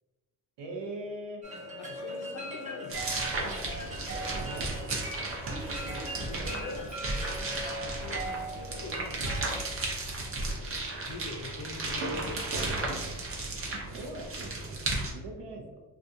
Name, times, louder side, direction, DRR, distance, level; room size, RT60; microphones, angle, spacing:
voice 1, 0.6-1.4 4.0-4.7 13.9-15.8, right 2 dB, 80° right, 1 dB, 0.7 m, -41 dB
sound 1, 1.4-9.8, right 1 dB, 20° right, 0.9 m, -39 dB
voice 2, 1.9-3.8 5.7-6.9 7.8-9.2 10.4-10.8 11.0-12.6, left 2 dB, 40° left, 2 dB, 0.4 m, -44 dB
sound 2, 2.9-15.1, right 2 dB, 35° right, 0.5 m, -34 dB
2.5 x 2.3 x 2.6 m, 1.2 s
cardioid pair, 110°, 41 cm